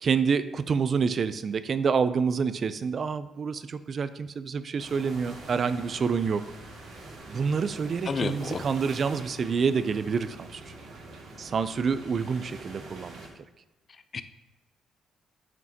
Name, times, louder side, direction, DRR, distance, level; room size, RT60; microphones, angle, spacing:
voice 1, 0.0-6.4 7.3-10.7 11.4-13.2, right 5 dB, 50° right, 13 dB, 0.4 m, -27 dB
sound 1, 4.8-13.3, right 2 dB, 75° right, 2.2 m, -45 dB
voice 2, 8.1-8.6 14.1-14.2, left 5 dB, 40° left, 12 dB, 0.5 m, -30 dB
9.0 x 6.1 x 2.8 m, 1.0 s
cardioid pair, 90°, 0 cm